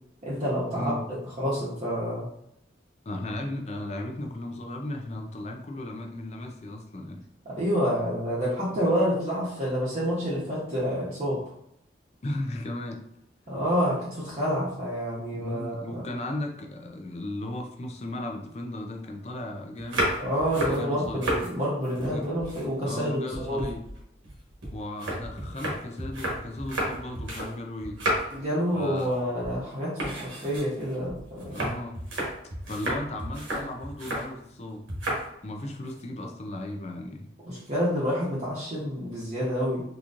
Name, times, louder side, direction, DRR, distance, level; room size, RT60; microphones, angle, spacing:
voice 1, 0.2-0.9 1.4-2.3 7.4-11.4 13.5-16.0 20.2-23.7 28.3-31.6 37.4-39.8, equal, 35° right, -9 dB, 0.9 m, -28 dB
voice 2, 0.7-1.1 3.1-7.2 12.2-13.0 15.4-20.1 20.6-21.2 22.0-22.3 22.8-23.8 24.7-28.0 28.7-29.2 31.5-32.0 32.7-34.8 35.4-37.3, left 1 dB, 35° left, 3 dB, 0.4 m, -36 dB
sound 1, 19.8-21.5 21.8-23.0 23.3-27.5 27.8-28.5 28.8-29.2 29.4-29.6 30.0-34.3 34.9-35.3 35.6-36.0, right 1 dB, 90° right, 1.3 m, -32 dB
3.9 x 2.9 x 2.5 m, 0.76 s
head